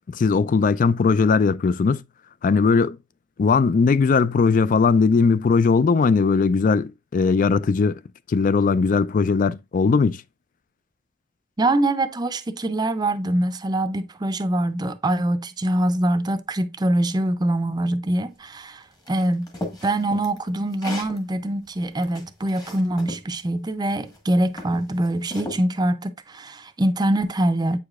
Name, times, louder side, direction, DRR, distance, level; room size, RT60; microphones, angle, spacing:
voice 1, 0.1-2.0 2.4-3.0 3.4-8.0 8.3-10.2, left 4 dB, 45° left, 0.3 m, -19 dB
voice 2, 11.6-19.5 19.8-27.8, right 1 dB, 20° right, 0.5 m, -24 dB
sound 1, 19.1-21.2 21.7-23.2 24.0-24.2 24.6-25.6, left 1 dB, 20° left, 1.3 m, -35 dB
8.0 x 4.8 x 2.4 m
head